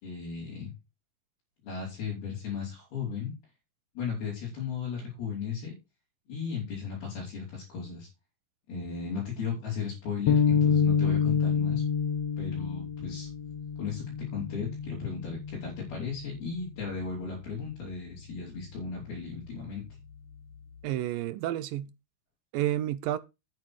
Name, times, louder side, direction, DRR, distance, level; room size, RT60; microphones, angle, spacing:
voice 1, 0.0-0.7 1.6-3.3 4.0-5.8 6.3-8.1 8.7-11.8 12.4-13.3 13.8-14.1 14.3-19.8, left 6 dB, 85° left, 7.0 m, -36 dB
sound 1, 10.3-16.7, left 6 dB, 70° left, 1.6 m, -28 dB
voice 2, 10.5-10.9 20.8-21.9 22.5-23.2, right 13 dB, 75° right, 2.3 m, -31 dB
10.5 x 9.1 x 4.8 m
omnidirectional pair, 4.3 m